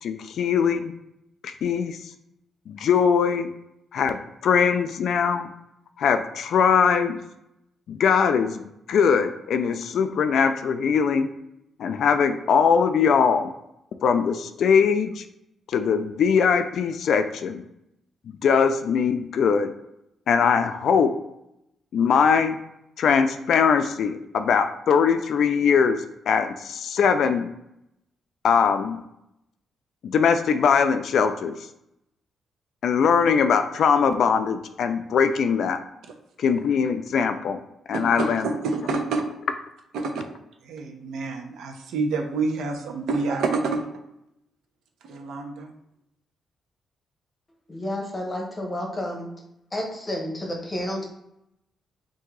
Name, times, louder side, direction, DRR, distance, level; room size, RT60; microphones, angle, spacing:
voice 1, 0.0-0.9 1.4-2.0 2.7-3.5 3.9-5.5 6.0-7.2 7.9-11.3 11.8-13.5 14.0-15.2 15.7-17.6 18.4-19.7 20.3-21.1 21.9-22.6 23.0-27.5 28.4-29.0 30.0-31.5 32.8-35.8 36.4-37.6 37.9-38.5, left 6 dB, 55° left, 9 dB, 0.4 m, -21 dB
voice 2, 37.9-39.2 39.9-40.3 40.6-43.9 45.0-45.7, right 3 dB, 85° right, 4 dB, 0.7 m, -28 dB
voice 3, 47.7-49.3 49.7-51.1, left 1 dB, 15° left, 0 dB, 0.9 m, -30 dB
3.7 x 2.7 x 4.6 m, 0.82 s
cardioid pair, 160°, 0 cm